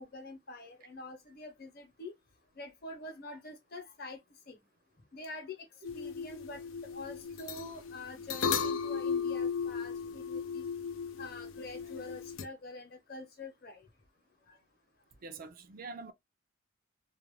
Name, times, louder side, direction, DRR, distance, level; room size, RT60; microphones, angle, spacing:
voice 1, 0.0-2.1 2.6-4.2 4.5-4.6 5.1-5.6 5.9-10.6 11.2-13.8 14.5-14.6, left 2 dB, 50° left, 0.8 m, -46 dB
sound 1, 5.8-12.4, left 6 dB, 85° left, 0.4 m, -36 dB
voice 2, 15.2-16.1, right 3 dB, 45° right, 0.4 m, -44 dB
2.4 x 2.1 x 3.1 m
head